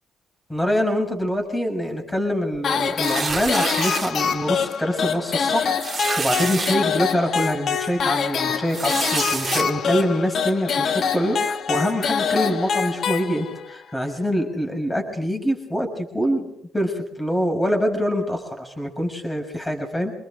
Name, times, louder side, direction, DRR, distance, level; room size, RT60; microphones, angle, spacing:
voice 1, 0.5-20.1, equal, 15° left, 3 dB, 6.5 m, -25 dB
sound 1, 2.6-13.8, left 6 dB, 60° left, 1.3 m, -25 dB
sound 2, 3.0-4.1 4.7-4.9 5.1-5.2 5.8-6.8 7.4-7.5 8.7-9.6, right 5 dB, 35° right, 2.2 m, -27 dB
27.0 x 20.5 x 5.2 m, 0.72 s
cardioid pair, 90°, 0 cm